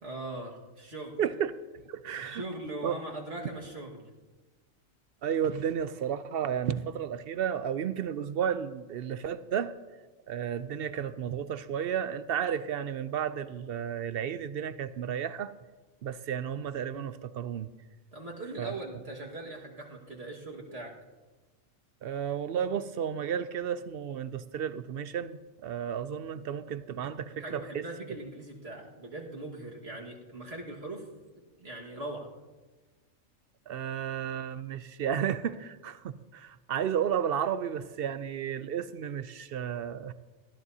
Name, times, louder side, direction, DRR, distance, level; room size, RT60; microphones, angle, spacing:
voice 1, 0.0-1.2 2.2-4.1 18.1-20.9 27.4-31.1 31.3-32.3, right 2 dB, 50° right, 2.0 m, -40 dB
voice 2, 1.2-2.4 2.8-2.9 5.2-9.7 10.3-15.5 16.0-17.7 18.6-18.7 22.0-27.8 33.7-40.1, right 8 dB, 65° right, 0.6 m, -32 dB
19.5 x 13.5 x 2.8 m
omnidirectional pair, 1.4 m